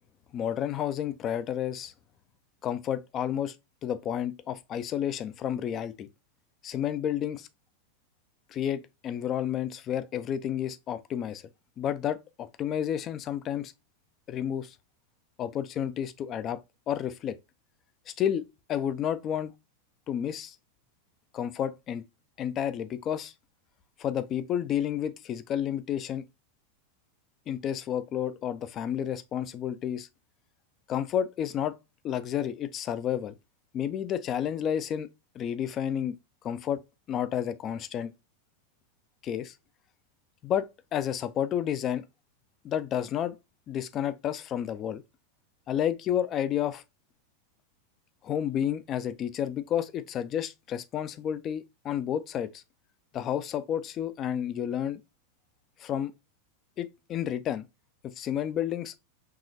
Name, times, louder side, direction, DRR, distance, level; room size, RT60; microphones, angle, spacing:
voice 1, 0.3-1.9 2.6-3.6 3.8-6.1 6.6-7.5 8.5-11.4 11.8-13.7 14.3-14.8 15.4-16.6 16.9-17.4 18.1-19.5 20.1-20.6 21.3-22.0 22.4-23.3 24.0-26.2 27.5-30.1 30.9-31.8 32.0-33.4 33.7-35.1 35.3-36.2 36.4-36.8 37.1-38.1 39.2-39.5 40.4-42.1 42.6-43.4 43.7-45.0 45.7-46.8 48.2-52.6 53.1-55.0 55.8-56.1 56.8-57.7 58.0-58.9, left 10 dB, 30° left, 0.4 m, -31 dB
4.7 x 3.1 x 2.5 m
figure-of-eight pair, 90°, 0 cm